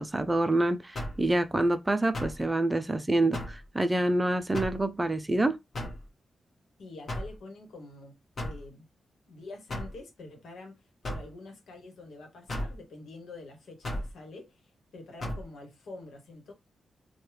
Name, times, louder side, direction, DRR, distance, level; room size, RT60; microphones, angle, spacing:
voice 1, 0.0-5.6, right 1 dB, 15° right, 0.4 m, -27 dB
sound 1, 0.9-1.3 2.1-2.4 3.3-3.6 4.5-4.8 5.7-6.0 7.1-7.4 8.4-8.6 9.7-9.9 11.0-11.3 12.5-12.7 13.8-14.1 15.2-15.4, left 1 dB, 45° left, 1.2 m, -35 dB
voice 2, 6.8-8.9 9.3-10.8 11.0-16.5, left 3 dB, 85° left, 1.1 m, -46 dB
3.1 x 2.2 x 3.2 m
wide cardioid pair, 120°, 0 cm